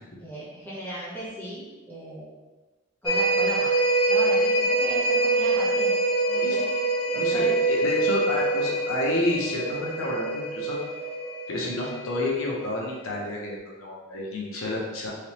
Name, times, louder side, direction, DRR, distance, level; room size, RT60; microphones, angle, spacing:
voice 1, 0.2-2.3 3.0-3.7 4.1-5.9 6.3-6.7 7.1-7.6, right 1 dB, 10° left, -9 dB, 1.1 m, -37 dB
sound 1, 3.1-12.8 13.2-13.3, right 2 dB, 25° left, 0.7 m, -25 dB
voice 2, 7.1-10.8 11.5-15.1, left 2 dB, 85° left, -2 dB, 0.7 m, -30 dB
3.4 x 2.9 x 2.9 m, 1.2 s
head